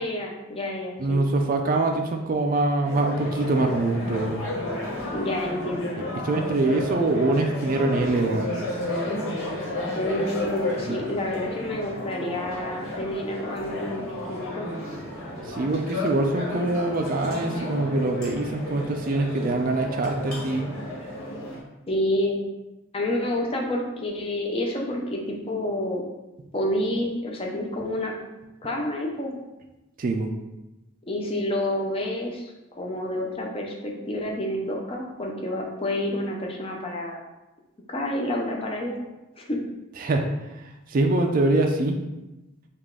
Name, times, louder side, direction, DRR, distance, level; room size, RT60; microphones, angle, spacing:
voice 1, 0.0-1.2 5.1-5.9 9.9-14.7 21.9-22.4 22.9-26.0 26.5-28.1 28.6-29.4 31.1-32.4 32.8-37.2 37.9-39.0 39.4-39.6, left 1 dB, 25° left, -1 dB, 0.6 m, -29 dB
voice 2, 1.0-4.5 6.2-8.5 10.9-11.0 15.4-20.7 30.0-30.3 40.0-40.3 40.5-42.0, right 2 dB, 40° right, 2 dB, 0.3 m, -24 dB
sound 1, 2.8-21.6, left 1 dB, 75° left, 1.5 m, -32 dB
5.0 x 2.4 x 3.6 m, 1.0 s
head